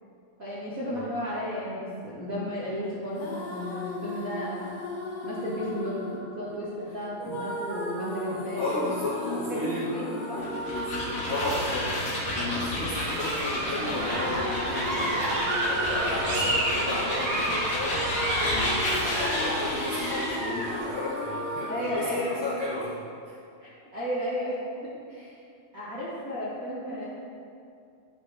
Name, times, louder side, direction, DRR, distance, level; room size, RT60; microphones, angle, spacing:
voice 1, 0.4-4.7 5.2-5.9 6.3-8.9 9.5-10.4 21.7-22.4 23.6-24.6 25.1-25.3 25.7-27.1, equal, 55° right, -10 dB, 0.9 m, -33 dB
sound 1, 3.1-21.9, left 1 dB, 70° left, 2.7 m, -36 dB
voice 2, 8.6-10.0 10.3-18.0 18.4-18.8 19.2-22.9, left 2 dB, 90° left, -7 dB, 1.0 m, -34 dB
sound 2, 10.4-20.5, left 1 dB, 45° left, 1.2 m, -32 dB
sound 3, 12.2-20.8, right 1 dB, 85° right, 3.7 m, -30 dB
10.5 x 8.7 x 3.3 m, 2.5 s
omnidirectional pair, 4.1 m